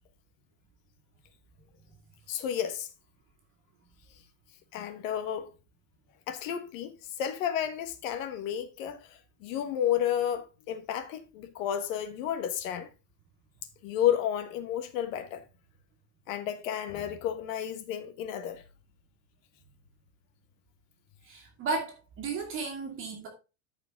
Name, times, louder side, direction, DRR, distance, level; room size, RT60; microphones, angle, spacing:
voice 1, 2.3-2.9 4.7-5.5 6.3-12.9 13.8-15.4 16.3-18.6, left 10 dB, 60° left, 1.4 m, -32 dB
voice 2, 21.2-23.3, right 4 dB, 25° right, 1.9 m, -34 dB
13.5 x 5.0 x 3.6 m
supercardioid pair, 175°, 45 cm